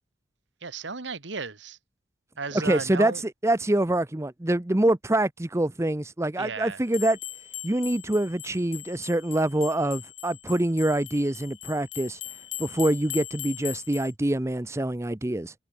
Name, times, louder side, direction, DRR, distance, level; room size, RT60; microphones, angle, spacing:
voice 1, 0.6-1.8 2.4-3.2 6.4-6.8, right 4 dB, 75° right, 1.5 m, -34 dB
voice 2, 2.5-3.1 3.4-7.2 7.6-12.2 12.6-15.5, right 1 dB, 15° right, 0.7 m, -25 dB
sound 1, 6.9-14.1, left 14 dB, 85° left, 1.8 m, -40 dB
head